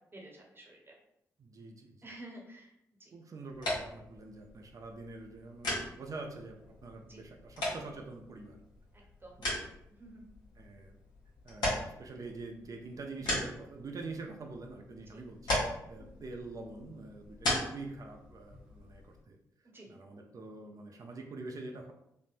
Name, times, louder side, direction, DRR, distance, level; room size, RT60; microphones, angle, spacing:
voice 1, 0.1-0.9 2.0-2.7 3.0-3.1 7.1-7.2 8.9-9.4 9.9-10.2 15.1-15.2 16.0-16.2 19.7-19.9, right 1 dB, 30° right, -1 dB, 0.9 m, -51 dB
voice 2, 1.4-2.1 3.1-8.6 9.4-9.7 10.6-11.0 11.4-19.4 19.9-21.9, right 3 dB, 50° right, 2 dB, 0.5 m, -45 dB
sound 1, 3.5-19.2, left 1 dB, 70° left, 1.0 m, -39 dB
3.5 x 2.0 x 2.5 m, 0.79 s
hypercardioid pair, 45°, 8 cm